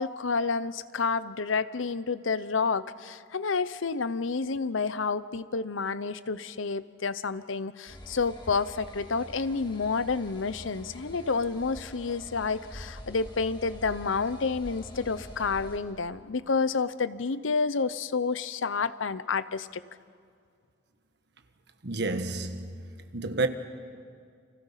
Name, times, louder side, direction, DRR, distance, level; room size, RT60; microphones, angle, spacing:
voice 1, 0.0-19.8, left 4 dB, 90° left, 0.8 m, -29 dB
sound 1, 7.9-15.8, equal, 25° left, 3.2 m, -46 dB
voice 2, 21.8-23.5, right 2 dB, 60° right, 1.4 m, -30 dB
30.0 x 25.5 x 5.8 m
head